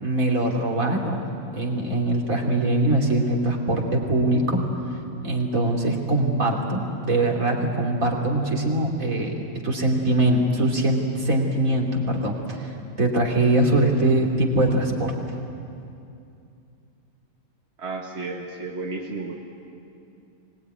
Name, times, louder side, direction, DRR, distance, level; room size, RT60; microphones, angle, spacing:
voice 1, 0.0-4.6 5.2-9.3 9.6-15.1, right 1 dB, 70° right, 0 dB, 3.2 m, -22 dB
voice 2, 17.8-19.3, right 3 dB, 50° right, -1 dB, 1.9 m, -32 dB
24.0 x 19.0 x 9.5 m, 2.6 s
omnidirectional pair, 1.5 m